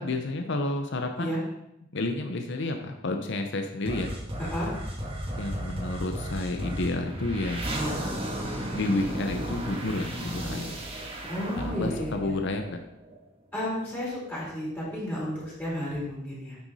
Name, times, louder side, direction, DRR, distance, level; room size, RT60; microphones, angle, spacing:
voice 1, 0.0-1.3 1.9-4.1 5.4-7.7 8.7-10.8 11.6-12.8, left 2 dB, 60° left, 5 dB, 0.7 m, -30 dB
sound 1, 3.8-13.2, equal, 25° right, 1.5 m, -34 dB
voice 2, 4.4-4.7 7.7-8.0 11.3-12.3 13.5-16.6, equal, 10° left, -7 dB, 3.4 m, -32 dB
9.3 x 6.1 x 4.1 m, 0.82 s
head